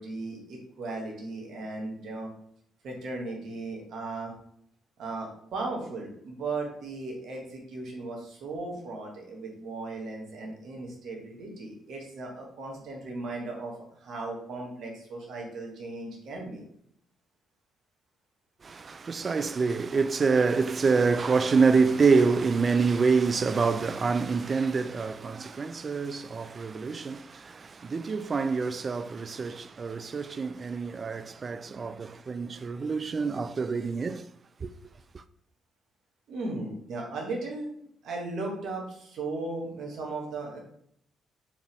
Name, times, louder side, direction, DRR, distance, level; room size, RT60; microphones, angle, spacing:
voice 1, 0.0-2.3 2.8-4.3 5.0-16.6 36.3-37.7 38.0-40.6, right 3 dB, 60° right, 1.4 m, -36 dB
voice 2, 18.6-34.2 34.6-34.7 35.1-35.2, right 4 dB, 40° right, 0.3 m, -26 dB
4.5 x 3.5 x 3.2 m
figure-of-eight pair, 40°, 0 cm